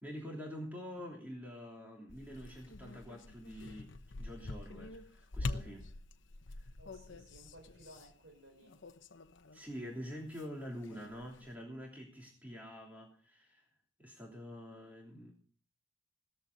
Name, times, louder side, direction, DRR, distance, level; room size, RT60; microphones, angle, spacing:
voice 1, 0.0-5.9 6.5-6.7 9.5-13.7 14.0-15.3, equal, 10° right, -2 dB, 3.1 m, -46 dB
sound 1, 2.1-9.7 10.0-11.5, left 2 dB, 65° left, 0.9 m, -45 dB
voice 2, 6.8-8.8, right 1 dB, 65° right, 3 dB, 5.2 m, -58 dB
17.5 x 14.0 x 4.0 m, 0.41 s
head